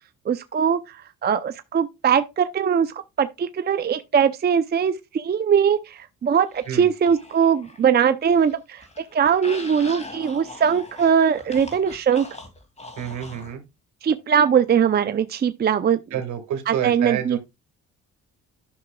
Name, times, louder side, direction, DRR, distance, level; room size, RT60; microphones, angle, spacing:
voice 1, 0.3-8.8 9.1-12.3 14.0-16.0 16.7-17.4, right 7 dB, 35° right, 0.5 m, -21 dB
sound 1, 6.5-7.9 8.2-13.5, left 2 dB, 20° left, 2.5 m, -41 dB
voice 2, 13.0-13.6 16.1-17.4, right 9 dB, 70° right, 1.9 m, -28 dB
11.5 x 5.8 x 2.3 m
cardioid pair, 90°, 30 cm